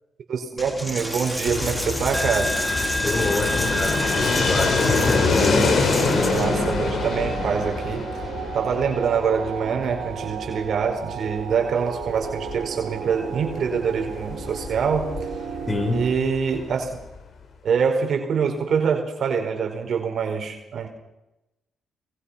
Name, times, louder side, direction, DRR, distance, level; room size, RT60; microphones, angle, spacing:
voice 1, 0.3-2.6 6.2-8.2 8.5-15.1 15.9-16.9 17.6-20.9, right 6 dB, 60° right, 3 dB, 4.8 m, -25 dB
Coin (dropping), 0.6-6.6, left 1 dB, 10° left, 3.7 m, -28 dB
Fixed-wing aircraft airplane, 1.5-17.2, left 4 dB, 55° left, 4.7 m, -26 dB
sound 1, 2.8-16.1, right 8 dB, 75° right, 3.0 m, -34 dB
voice 2, 3.0-5.3 15.7-16.1, left 2 dB, 25° left, 4 dB, 6.5 m, -27 dB
24.0 x 22.5 x 5.8 m, 0.91 s
cardioid pair, 90°, 0 cm